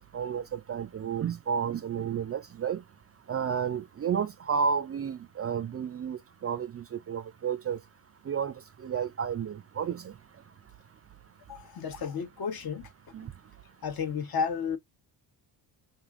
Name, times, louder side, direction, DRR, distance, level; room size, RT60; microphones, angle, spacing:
voice 1, 0.0-2.8 3.3-7.8 8.3-8.5 8.8-10.1 13.1-13.3, right 7 dB, 30° right, 0.4 m, -31 dB
voice 2, 11.5-12.9 13.8-14.8, left 6 dB, 50° left, 1.0 m, -32 dB
3.4 x 2.6 x 2.4 m
supercardioid pair, 70°, 48 cm